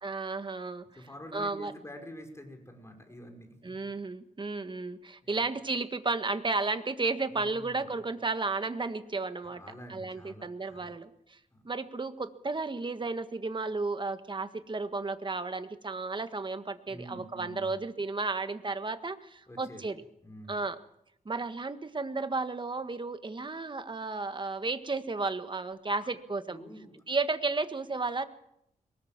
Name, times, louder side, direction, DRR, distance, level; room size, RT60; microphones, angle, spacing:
voice 1, 0.0-0.8 1.3-1.7 3.6-9.6 9.9-11.4 11.6-20.0 20.5-20.8 21.2-26.6 27.1-28.2, right 3 dB, 30° right, 10 dB, 1.6 m, -33 dB
voice 2, 0.9-3.9 5.2-5.4 7.3-8.0 9.4-10.9 11.5-11.7 16.9-17.8 19.5-19.9 20.2-20.6 26.0-26.1 26.5-27.0, equal, 20° left, 5 dB, 5.2 m, -48 dB
23.0 x 20.0 x 7.5 m, 0.78 s
cardioid pair, 90°, 15 cm